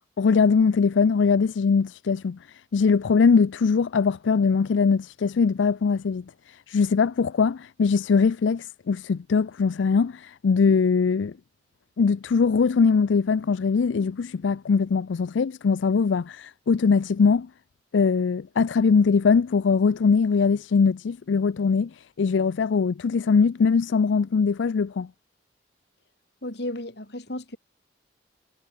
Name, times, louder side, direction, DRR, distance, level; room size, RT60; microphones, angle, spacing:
voice 1, 0.0-2.4 2.7-11.3 12.0-17.5 17.9-25.1, left 5 dB, 80° left, 0.4 m, -21 dB
voice 2, 26.4-27.6, left 1 dB, 60° left, 3.1 m, -33 dB
head